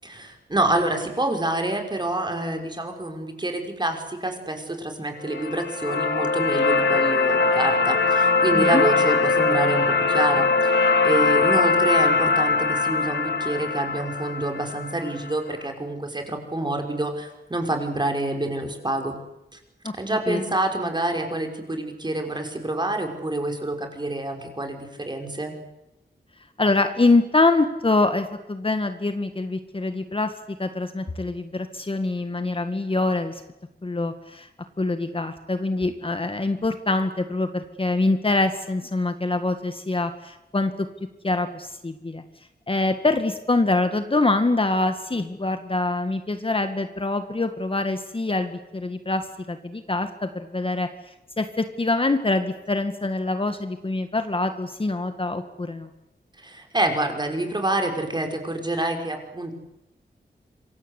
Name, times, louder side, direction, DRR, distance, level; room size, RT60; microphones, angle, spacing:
voice 1, 0.0-19.2 19.5-19.6 19.9-25.6 56.4-59.5, right 2 dB, 25° right, 4 dB, 5.6 m, -27 dB
sound 1, 5.2-15.3, left 4 dB, 90° left, 2.5 m, -21 dB
voice 2, 8.5-8.8 19.8-19.9 20.3-20.4 26.6-30.3 30.6-33.4 33.8-34.5 34.8-40.7 41.2-42.2 42.7-49.2 49.5-50.9 51.4-55.9, left 2 dB, 30° left, 8 dB, 1.9 m, -24 dB
27.0 x 23.5 x 8.3 m, 0.91 s
wide cardioid pair, 105°, 18 cm